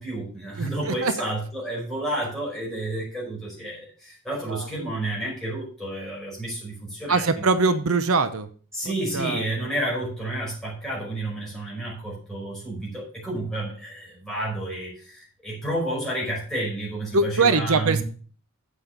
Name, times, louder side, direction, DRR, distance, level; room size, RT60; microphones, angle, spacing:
voice 1, 0.0-7.5 8.7-18.0, right 1 dB, ahead, -5 dB, 5.3 m, -30 dB
voice 2, 0.6-1.1 4.5-4.7 7.1-8.5 9.1-9.4 17.1-18.0, right 4 dB, 75° right, 11 dB, 0.7 m, -22 dB
8.0 x 5.6 x 6.7 m, 0.42 s
head